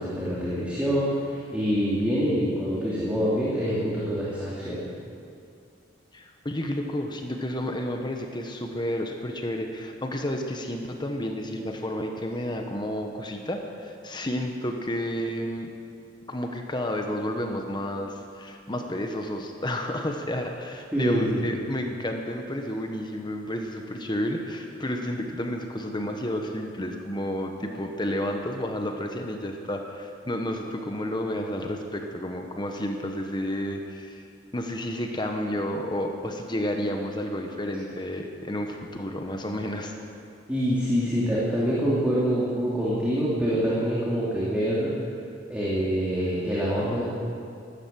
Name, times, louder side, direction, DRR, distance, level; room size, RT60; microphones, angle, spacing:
voice 1, 0.0-4.9 20.9-21.4 40.5-44.9 45.5-47.0, equal, 5° right, -8 dB, 2.7 m, -25 dB
voice 2, 6.1-15.7 16.3-34.2 34.5-39.9, left 1 dB, 25° left, 3 dB, 1.1 m, -31 dB
14.0 x 12.5 x 7.6 m, 2.4 s
head